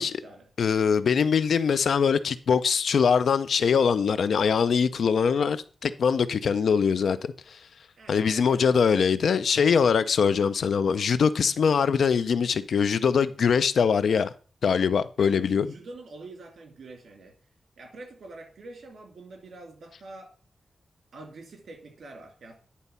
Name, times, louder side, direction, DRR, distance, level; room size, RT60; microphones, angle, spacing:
voice 1, 0.0-0.5 8.0-8.6 15.2-17.3 17.8-20.3 21.1-22.5, right 2 dB, 75° right, 2.6 m, -45 dB
voice 2, 0.6-7.6 8.1-14.3 14.6-15.7, left 6 dB, 80° left, 0.5 m, -23 dB
10.0 x 4.1 x 5.5 m
wide cardioid pair, 130°, 0 cm